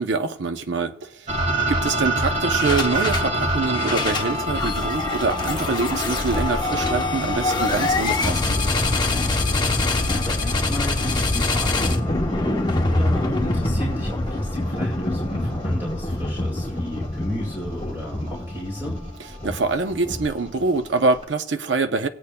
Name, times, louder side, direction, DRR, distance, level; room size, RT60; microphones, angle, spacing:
voice 1, 0.0-8.6 19.4-22.1, right 3 dB, 65° right, 0.6 m, -25 dB
sound 1, 1.3-21.2, right 1 dB, 40° right, 1.6 m, -30 dB
sound 2, 2.5-3.3 3.6-20.6, left 2 dB, 25° left, 0.8 m, -25 dB
sound 3, 5.2-10.7, left 4 dB, 50° left, 0.4 m, -37 dB
voice 2, 10.1-19.0, equal, 15° right, 2.0 m, -33 dB
19.0 x 8.5 x 2.2 m
head